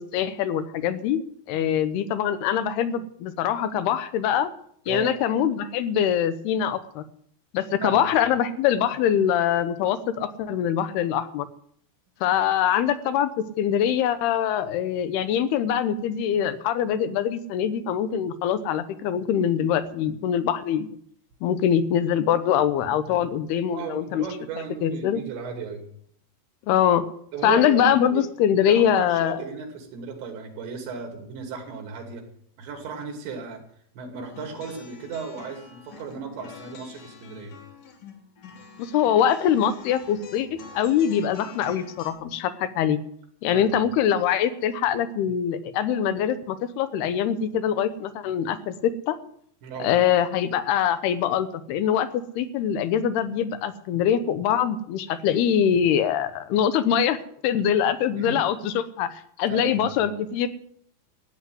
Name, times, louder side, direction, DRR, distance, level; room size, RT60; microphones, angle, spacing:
voice 1, 0.0-4.5 4.9-7.0 7.5-11.5 12.2-21.0 21.4-24.2 24.8-25.2 26.7-27.1 27.4-29.4 38.8-43.0 43.4-49.2 49.8-60.5, left 9 dB, 75° left, 12 dB, 2.7 m, -23 dB
voice 2, 23.7-25.9 27.3-28.3 28.6-32.2 32.6-33.6 34.0-37.5 43.5-43.7 49.6-49.9 58.1-58.4 59.5-59.9, right 5 dB, 85° right, 3 dB, 4.7 m, -35 dB
sound 1, 34.2-42.1, left 7 dB, 55° left, 3.3 m, -46 dB
14.0 x 9.5 x 7.7 m, 0.65 s
omnidirectional pair, 5.0 m